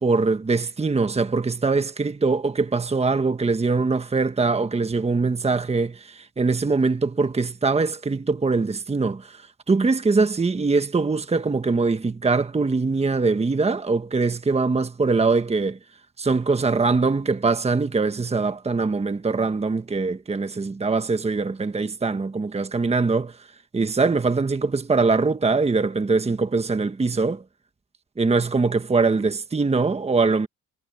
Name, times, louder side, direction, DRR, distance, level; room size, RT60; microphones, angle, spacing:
voice 1, 0.0-9.4 9.7-15.8 16.2-23.4 23.7-27.4 28.2-30.5, right 4 dB, 20° right, 1.3 m, -22 dB
cardioid pair, 90°, 30 cm